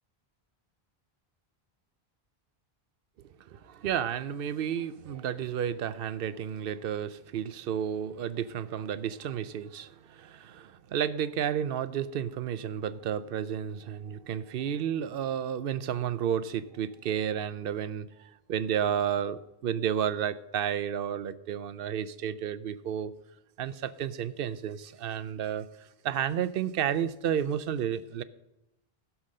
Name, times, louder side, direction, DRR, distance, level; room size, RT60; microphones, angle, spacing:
voice 1, 3.5-23.1 23.6-28.2, right 9 dB, 70° right, 0.8 m, -32 dB
15.0 x 6.0 x 6.5 m
omnidirectional pair, 1.0 m